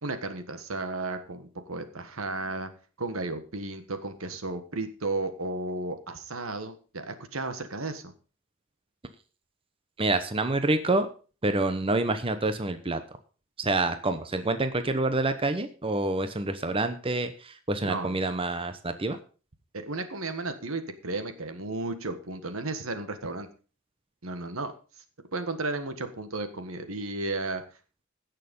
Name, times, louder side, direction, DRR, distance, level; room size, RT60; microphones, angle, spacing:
voice 1, 0.0-2.7 3.0-8.1 17.8-18.2 19.7-23.5 24.2-24.7 25.3-27.6, right 2 dB, 75° right, 9 dB, 1.6 m, -34 dB
voice 2, 10.0-11.1 11.4-13.0 13.6-19.2, right 2 dB, 25° right, 9 dB, 0.9 m, -27 dB
16.0 x 6.7 x 5.4 m, 0.37 s
head